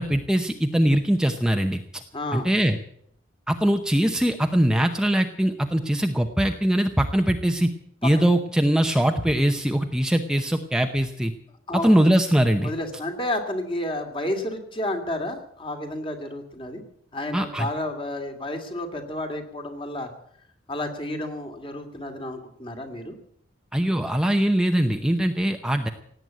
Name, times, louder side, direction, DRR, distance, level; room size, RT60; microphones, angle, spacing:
voice 1, 0.0-2.0 2.3-2.8 3.5-7.7 8.0-11.3 11.7-12.7 17.3-17.7 23.7-25.9, right 1 dB, 5° right, 5 dB, 0.8 m, -22 dB
voice 2, 2.1-2.5 8.0-8.1 11.7-11.9 12.6-16.8 17.1-20.1 20.7-23.1, left 1 dB, 30° left, 5 dB, 2.4 m, -31 dB
17.5 x 9.0 x 9.2 m, 0.70 s
head